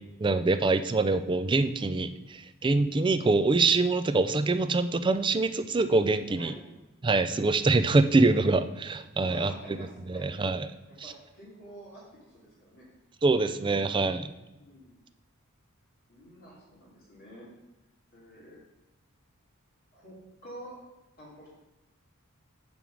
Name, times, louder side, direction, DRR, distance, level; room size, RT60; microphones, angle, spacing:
voice 1, 0.2-6.5 7.0-9.5 10.1-10.7 13.2-14.3, right 3 dB, 20° right, 10 dB, 0.4 m, -24 dB
voice 2, 6.4-6.7 9.2-10.4 11.0-12.9 14.6-14.9 16.1-17.5 18.1-18.6 19.9-20.2 20.4-20.8 21.2-21.5, right 1 dB, 45° left, -8 dB, 2.6 m, -48 dB
9.1 x 3.5 x 6.3 m, 1.0 s
head